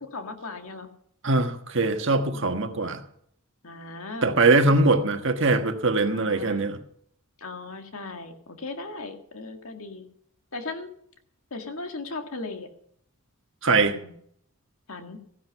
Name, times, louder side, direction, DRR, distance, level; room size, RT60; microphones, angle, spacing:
voice 1, 0.0-0.9 2.3-2.8 3.6-5.2 6.0-6.7 7.4-10.0 10.5-10.9 11.5-12.7 13.7-14.1 14.9-15.2, left 3 dB, 70° left, 1.9 m, -38 dB
voice 2, 1.2-3.0 4.2-6.8 13.6-14.0, right 3 dB, 55° right, 1.4 m, -22 dB
15.0 x 11.0 x 5.7 m
head